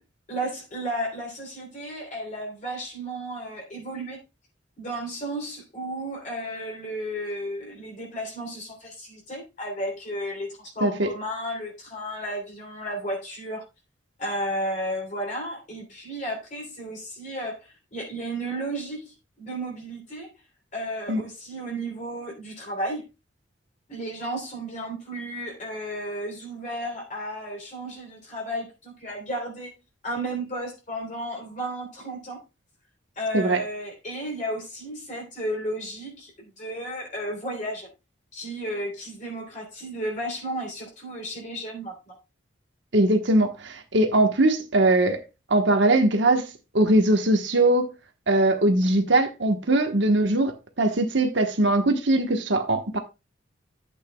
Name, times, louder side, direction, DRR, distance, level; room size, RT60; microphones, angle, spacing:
voice 1, 0.3-4.2 4.8-13.6 14.2-20.3 20.7-23.0 23.9-29.7 30.0-32.4 33.1-37.9 38.3-42.1, right 1 dB, 40° left, 3.4 m, -33 dB
voice 2, 42.9-45.2 45.5-46.5 46.7-47.9 48.3-53.0, right 1 dB, 70° right, 1.2 m, -21 dB
12.0 x 8.2 x 2.3 m
head